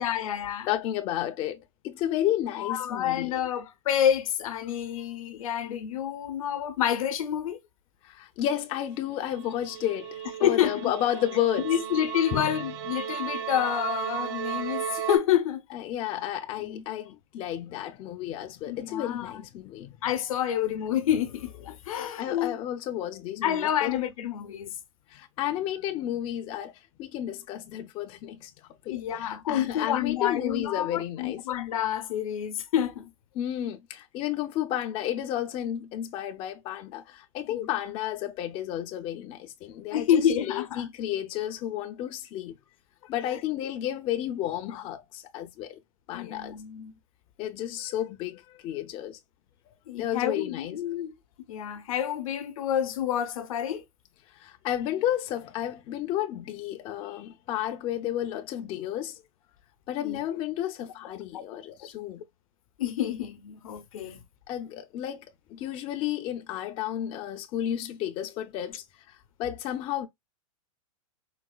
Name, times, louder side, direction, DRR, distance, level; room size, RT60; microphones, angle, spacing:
voice 1, 0.0-0.7 2.6-7.6 10.4-10.9 11.6-15.6 16.6-16.8 18.6-19.4 20.0-22.6 23.4-24.8 28.9-33.1 39.9-40.9 43.2-43.4 46.1-46.9 49.9-51.1 51.5-53.8 60.0-60.2 61.3-61.4 62.8-64.2, left 10 dB, 75° left, 0.7 m, -28 dB
voice 2, 0.7-3.3 8.0-11.7 12.3-12.6 15.7-19.9 21.9-24.0 25.1-26.7 27.0-28.5 28.8-31.4 33.4-40.2 40.5-42.6 43.0-45.8 46.1-46.6 47.4-49.2 49.7-50.8 54.3-59.2 59.9-62.2 64.5-65.2 65.5-70.1, left 11 dB, 30° left, 0.3 m, -32 dB
sound 1, 9.3-15.2, right 10 dB, 45° right, 0.7 m, -35 dB
3.9 x 2.0 x 2.3 m
hypercardioid pair, 125°, 18 cm